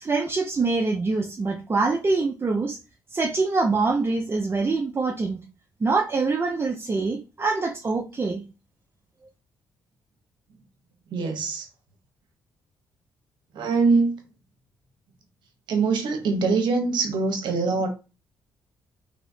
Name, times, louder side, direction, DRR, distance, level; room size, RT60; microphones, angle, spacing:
voice 1, 0.0-2.8 3.1-5.4 5.8-8.4, right 3 dB, 30° right, 0.6 m, -24 dB
voice 2, 11.1-11.7 13.5-14.2 15.7-17.9, right 4 dB, 70° right, 0.9 m, -23 dB
3.1 x 2.9 x 2.6 m
supercardioid pair, 70°, 8 cm